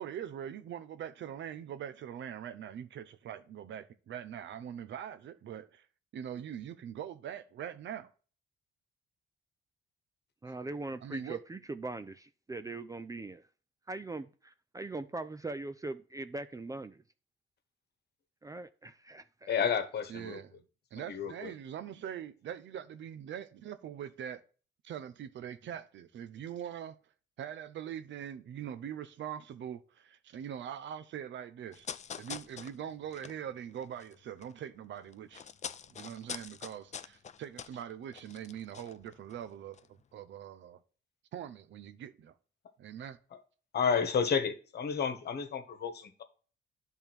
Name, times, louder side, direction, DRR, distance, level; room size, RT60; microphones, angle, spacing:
voice 1, 0.0-5.8 6.1-8.1 11.0-11.4 20.1-20.6 20.9-24.4 24.8-27.0 27.4-31.9 32.2-35.4 35.9-40.8 41.3-42.3 42.8-43.2, right 9 dB, 70° right, 0.7 m, -42 dB
voice 2, 10.4-13.4 13.9-17.0 18.4-19.5, right 2 dB, 15° right, 0.4 m, -41 dB
voice 3, 19.5-20.4 20.9-21.5 43.7-46.2, left 6 dB, 55° left, 1.3 m, -31 dB
sound 1, 31.7-34.6 34.9-39.5 39.7-39.9, left 7 dB, 35° left, 0.5 m, -45 dB
10.5 x 3.6 x 4.4 m
cardioid pair, 90°, 20 cm